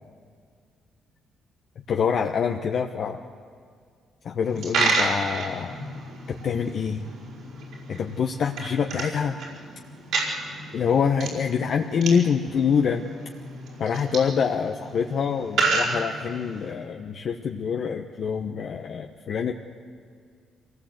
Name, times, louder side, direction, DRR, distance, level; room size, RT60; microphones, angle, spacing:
voice 1, 1.9-3.2 4.2-5.8 6.4-7.1 7.9-9.4 10.7-13.0 13.8-19.5, left 6 dB, 60° left, 3 dB, 1.1 m, -25 dB
Coin (dropping), 4.4-16.7, right 3 dB, 75° right, 5.0 m, -31 dB
24.5 x 18.5 x 8.0 m, 2.1 s
cardioid pair, 90°, 0 cm